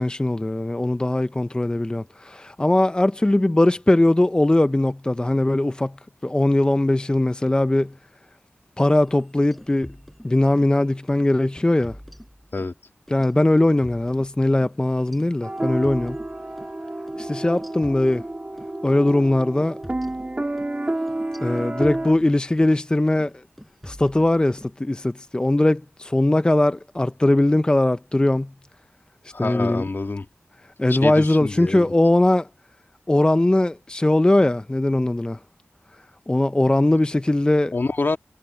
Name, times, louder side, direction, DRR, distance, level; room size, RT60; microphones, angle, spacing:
voice 1, 0.0-5.9 6.2-7.9 8.8-10.0 10.2-12.0 13.1-16.2 17.2-18.2 18.8-19.8 21.4-23.3 23.9-28.5 29.4-29.8 30.8-32.5 33.1-35.4 36.3-37.7, left 1 dB, 20° left, 0.5 m, -20 dB
sound 1, 9.0-10.8 11.1-11.3 11.6-12.8 13.1-16.8 17.1-17.2 17.6-18.7 19.1-19.3 19.6-22.8 23.1-23.3 23.6-24.7, equal, ahead, 6.4 m, -45 dB
sound 2, 15.4-22.1, right 1 dB, 30° right, 2.4 m, -30 dB
voice 2, 29.3-30.3 30.9-31.9 37.7-38.2, left 3 dB, 55° left, 1.6 m, -26 dB
wide cardioid pair, 55°, 4 cm